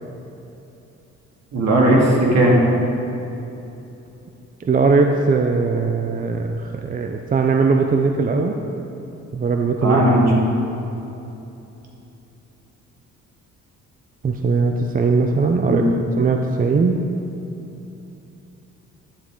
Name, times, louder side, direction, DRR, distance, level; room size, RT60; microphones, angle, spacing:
voice 1, 1.5-2.6 9.8-10.3 15.7-15.8, right 1 dB, 60° right, -3 dB, 2.4 m, -16 dB
voice 2, 4.6-8.6 9.3-10.0 14.2-15.9 16.2-17.0, right 4 dB, 30° right, 4 dB, 0.5 m, -19 dB
11.5 x 8.3 x 3.8 m, 2.9 s
cardioid pair, 90°, 30 cm